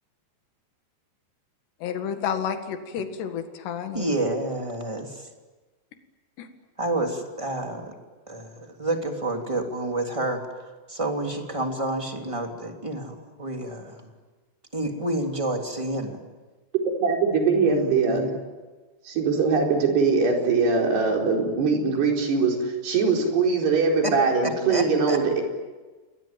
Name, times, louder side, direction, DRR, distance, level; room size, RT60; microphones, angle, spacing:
voice 1, 1.8-4.1 6.4-6.5, left 8 dB, 80° left, 6 dB, 4.0 m, -30 dB
voice 2, 3.9-5.1 6.8-7.9 8.3-10.4 10.9-13.9 14.7-16.2 17.7-18.3 24.0-24.1 24.7-25.2, right 1 dB, 10° right, 3 dB, 2.5 m, -29 dB
voice 3, 17.0-18.3 19.1-25.4, right 4 dB, 75° right, 1 dB, 6.3 m, -22 dB
29.0 x 21.5 x 9.1 m, 1.3 s
omnidirectional pair, 4.8 m